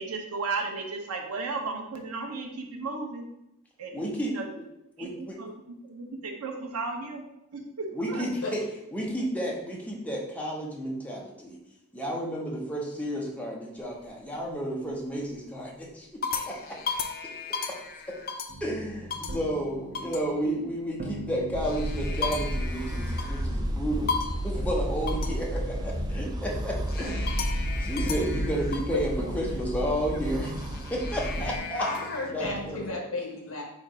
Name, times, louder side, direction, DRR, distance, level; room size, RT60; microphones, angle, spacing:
voice 1, 0.0-3.3 3.8-4.0 4.3-4.5 5.0-7.2 7.5-8.3 14.8-15.0, right 3 dB, 80° right, 3 dB, 0.8 m, -35 dB
voice 2, 3.9-4.6 5.0-5.4 7.9-8.6 8.9-11.6 11.9-16.8 18.6-24.1 24.4-27.3 27.8-30.6 30.9-31.9 32.3-33.0, equal, 5° left, -2 dB, 0.8 m, -32 dB
sound 1, 13.8-14.5 15.0-15.4 15.9-18.7 19.1-19.4 19.9-20.3 21.4-23.6 24.1-24.5 25.1-25.4 26.9-29.0 30.3-32.3, left 5 dB, 45° left, 0.5 m, -35 dB
sound 2, 18.5-24.2 24.6-32.9, right 1 dB, 45° right, 0.8 m, -43 dB
sound 3, 21.5-31.6, equal, 20° right, 0.3 m, -31 dB
voice 3, 31.8-33.6, left 2 dB, 65° left, 0 dB, 1.2 m, -33 dB
4.3 x 2.5 x 4.8 m, 0.84 s
head